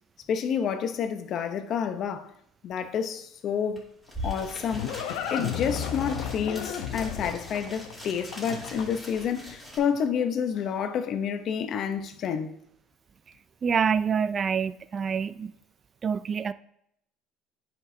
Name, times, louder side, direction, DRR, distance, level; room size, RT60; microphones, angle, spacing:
voice 1, 0.3-2.3 2.6-3.9 4.2-5.0 5.3-12.5, left 7 dB, 55° left, 0.7 m, -29 dB
sound 1, 3.8-9.8, equal, 5° right, 2.5 m, -41 dB
Livestock farm animals working animals, 4.1-9.2, left 9 dB, 85° left, 0.8 m, -34 dB
voice 2, 13.6-15.5 16.0-16.5, right 6 dB, 35° right, 0.4 m, -26 dB
9.8 x 6.0 x 2.7 m
cardioid pair, 110°, 0 cm